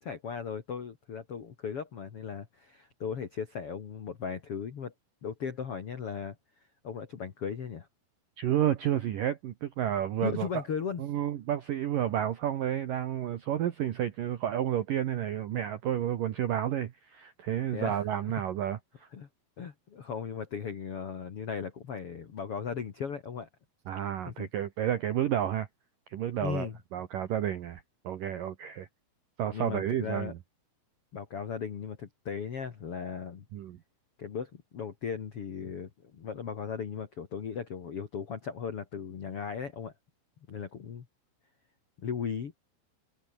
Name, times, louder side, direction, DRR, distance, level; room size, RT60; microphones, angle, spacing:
voice 1, 0.0-4.9 5.2-6.3 6.8-7.9 10.2-11.0 17.7-18.0 19.1-19.3 19.6-23.5 24.2-24.5 26.4-26.8 29.5-30.3 31.1-33.4 34.2-39.9 40.5-41.0 42.0-42.6, left 6 dB, 75° left, 1.3 m, -37 dB
voice 2, 8.4-10.6 11.0-19.1 23.9-25.7 26.1-28.9 29.4-30.4 33.5-33.8, right 11 dB, 75° right, 1.9 m, -31 dB
omnidirectional pair, 5.9 m